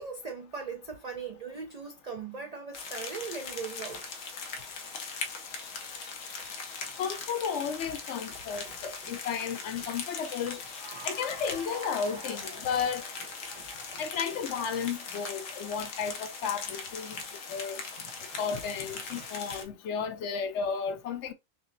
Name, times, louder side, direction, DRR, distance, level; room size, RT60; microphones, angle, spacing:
voice 1, 0.0-4.0 8.6-8.8 9.0-9.1 13.5-14.0 17.1-17.6 18.0-18.4 19.1-19.5 20.0-20.1, right 5 dB, 55° right, 0.4 m, -41 dB
sound 1, 2.7-19.6, left 5 dB, 90° left, 1.2 m, -40 dB
voice 2, 7.0-10.6 11.0-13.1 14.0-17.2 17.5-17.8 18.4-21.3, left 6 dB, 70° left, 0.9 m, -33 dB
Cheering / Applause, 10.6-15.8, right 3 dB, 80° right, 1.2 m, -49 dB
5.7 x 2.0 x 2.5 m
omnidirectional pair, 1.3 m